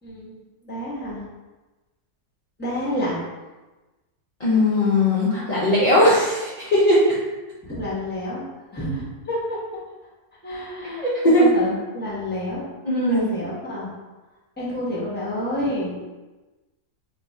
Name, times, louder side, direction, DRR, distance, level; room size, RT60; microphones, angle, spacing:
voice 1, 0.0-1.2 2.6-3.2 7.6-8.4 8.7-9.4 10.4-11.1 11.4-12.6 13.0-13.9 14.6-15.9, left 1 dB, 10° left, -7 dB, 0.6 m, -29 dB
voice 2, 4.4-7.2 10.9-11.5 12.8-13.2, left 1 dB, 55° left, -10 dB, 0.4 m, -18 dB
2.7 x 2.3 x 4.0 m, 1.2 s
omnidirectional pair, 1.7 m